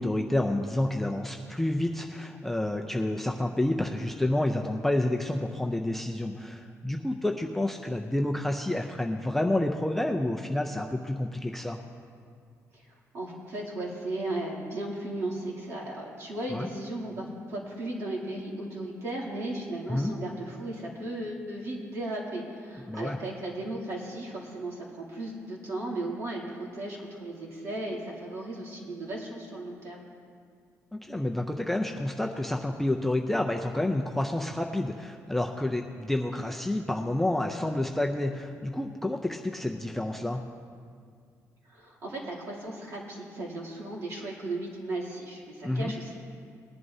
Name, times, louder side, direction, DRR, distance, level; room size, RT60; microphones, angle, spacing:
voice 1, 0.0-11.8 16.5-16.7 19.9-20.1 22.9-23.2 30.9-40.4 45.6-45.9, left 1 dB, 5° left, 1 dB, 0.4 m, -29 dB
voice 2, 13.1-30.1 41.7-46.2, right 1 dB, 50° right, -4 dB, 2.7 m, -36 dB
20.0 x 11.0 x 2.7 m, 2.2 s
cardioid pair, 175°, 6 cm